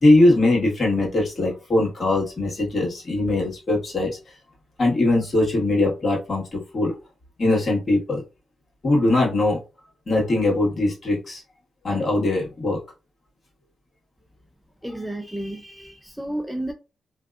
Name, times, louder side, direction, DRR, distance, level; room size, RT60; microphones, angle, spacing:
voice 1, 0.0-4.1 4.8-6.9 7.4-8.2 8.8-9.6 10.1-11.4 11.8-12.8, left 2 dB, 40° left, 1.3 m, -21 dB
voice 2, 14.8-16.7, right 1 dB, 5° right, 0.3 m, -31 dB
2.6 x 2.2 x 2.3 m
cardioid pair, 90°, 0 cm